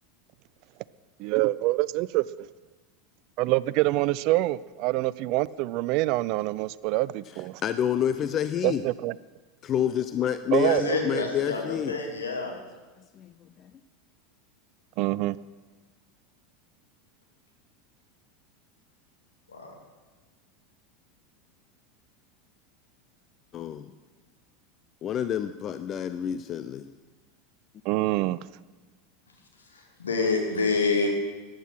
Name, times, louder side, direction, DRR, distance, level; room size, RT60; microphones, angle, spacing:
voice 1, 1.2-2.2 3.4-7.6 8.6-9.1 10.5-11.2 15.0-15.4 27.9-28.4, right 19 dB, 50° right, 20 dB, 0.4 m, -26 dB
voice 2, 7.2-8.9 9.6-12.0 13.1-13.7 23.5-23.9 25.0-26.9, left 9 dB, 35° left, 12 dB, 0.5 m, -28 dB
voice 3, 10.6-12.5 19.5-19.7 29.7-31.1, left 4 dB, 75° left, 1 dB, 2.9 m, -27 dB
15.0 x 10.5 x 6.2 m, 1.3 s
figure-of-eight pair, 80°, 0 cm